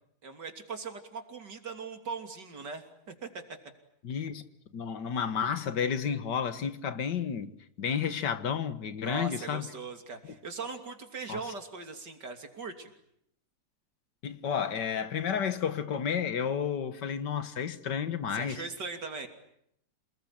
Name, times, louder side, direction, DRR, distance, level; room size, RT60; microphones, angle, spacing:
voice 1, 0.2-3.3 9.0-12.9 18.3-19.3, right 4 dB, 80° right, 3.6 m, -40 dB
voice 2, 4.0-4.4 4.7-7.5 7.8-9.7 11.3-11.4 14.2-18.6, left 7 dB, 80° left, 2.1 m, -31 dB
28.5 x 20.0 x 10.0 m
omnidirectional pair, 1.8 m